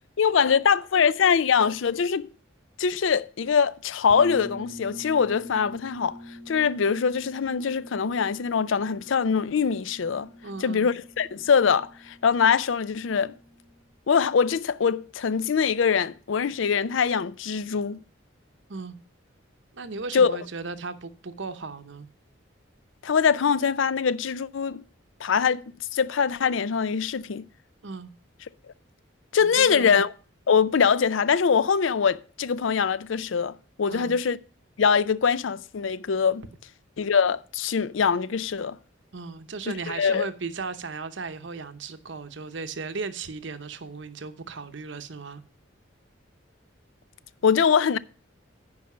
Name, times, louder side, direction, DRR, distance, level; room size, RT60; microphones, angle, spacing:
voice 1, 0.2-2.3 2.8-6.2 6.5-10.3 10.6-13.3 14.1-18.0 20.1-20.3 23.0-24.8 25.2-27.5 29.3-30.1 30.5-34.4 34.8-36.5 37.0-38.8 39.9-40.3 47.4-48.0, left 6 dB, 75° left, 0.5 m, -23 dB
sound 1, 4.1-13.8, left 1 dB, 30° left, 2.4 m, -45 dB
voice 2, 10.4-10.9 18.7-19.0 19.7-22.1 27.8-28.1 29.4-30.0 33.9-34.1 39.1-45.4, right 4 dB, 70° right, 0.8 m, -36 dB
9.7 x 5.1 x 6.7 m
head